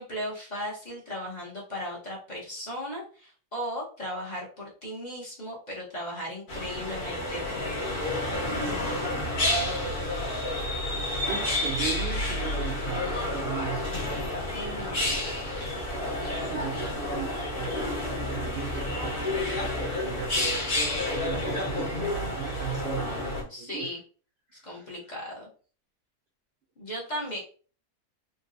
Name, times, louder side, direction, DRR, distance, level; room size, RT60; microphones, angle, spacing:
voice 1, 0.0-7.7 14.5-15.0 23.5-24.0 24.6-25.5 26.8-27.4, equal, 35° left, -4 dB, 0.9 m, -36 dB
sound 1, 6.5-23.4, left 1 dB, 85° left, 1.6 m, -30 dB
voice 2, 11.3-13.9 16.4-17.9 18.3-20.7 21.1-23.9 24.5-24.9, right 7 dB, 65° right, -2 dB, 0.6 m, -37 dB
3.9 x 2.2 x 2.5 m, 0.40 s
omnidirectional pair, 1.6 m